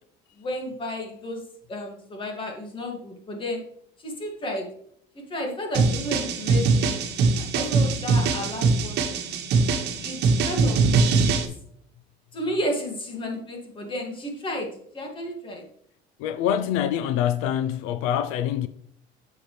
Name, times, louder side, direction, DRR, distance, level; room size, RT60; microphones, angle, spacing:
voice 1, 0.4-1.4 1.7-3.6 4.0-4.7 5.3-7.0 7.4-9.3 9.9-10.2 10.4-10.9 12.3-14.7 14.9-15.6, left 1 dB, 25° left, 2.3 m, -32 dB
sound 1, 5.7-11.5, right 4 dB, 55° right, 1.7 m, -22 dB
voice 2, 16.2-18.7, left 10 dB, 85° left, 0.6 m, -25 dB
9.9 x 7.1 x 3.3 m
cardioid pair, 165°, 21 cm